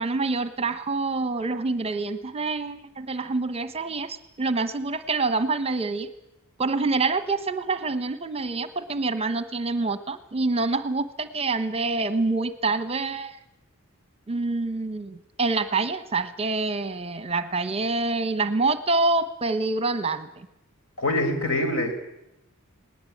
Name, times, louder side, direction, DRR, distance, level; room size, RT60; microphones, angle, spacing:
voice 1, 0.0-6.1 6.6-13.4 14.3-20.3, right 3 dB, 25° right, 11 dB, 1.0 m, -26 dB
voice 2, 21.0-21.9, left 1 dB, 65° left, 6 dB, 4.8 m, -24 dB
20.5 x 18.5 x 8.6 m, 0.87 s
head